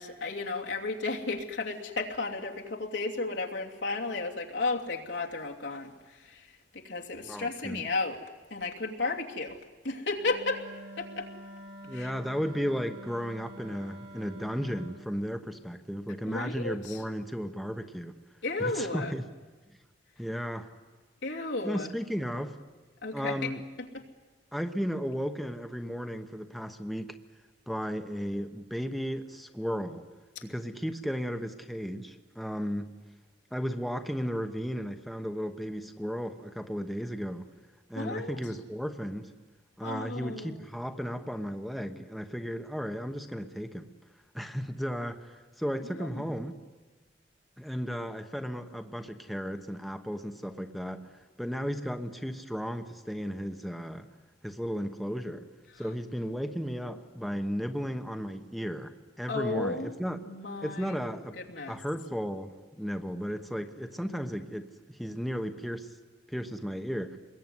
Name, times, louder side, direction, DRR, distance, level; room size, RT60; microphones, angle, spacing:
voice 1, 0.0-8.2 8.5-9.6 9.8-11.3 11.9-12.1 16.3-17.0 18.4-19.1 21.2-21.9 23.0-23.5 23.8-24.1 30.3-30.4 37.9-38.6 39.8-40.6 45.8-46.4 55.7-55.9 59.3-60.0 60.2-61.0 61.3-61.8, left 3 dB, 90° left, 0 dB, 2.9 m, -34 dB
voice 2, 7.2-7.8 11.8-18.2 18.6-19.3 20.2-20.7 21.6-22.6 23.1-23.6 24.5-27.2 27.7-30.1 30.4-32.9 33.5-37.5 37.9-39.3 39.8-43.9 44.3-46.6 47.6-51.1 51.4-54.1 54.4-55.4 55.8-60.2 60.6-61.3 61.7-65.9 66.3-67.2, equal, ahead, 6 dB, 1.1 m, -34 dB
Wind instrument woodwind instrument, 10.2-15.0, equal, 75° right, 4.0 m, -47 dB
26.0 x 21.5 x 9.6 m, 1.3 s
head